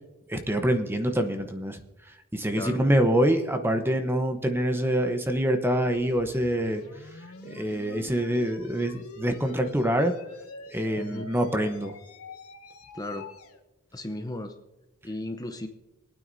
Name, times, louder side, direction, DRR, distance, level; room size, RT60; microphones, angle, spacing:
voice 1, 0.3-1.8 2.3-6.8 7.4-10.1 10.7-12.0, equal, 10° right, 6 dB, 0.9 m, -25 dB
sound 1, 5.8-13.6, left 3 dB, 85° left, 1.3 m, -46 dB
voice 2, 11.0-11.3 12.9-13.3 13.9-14.5 15.0-15.7, left 1 dB, 15° left, 5 dB, 0.7 m, -35 dB
27.0 x 9.2 x 2.7 m, 1.0 s
head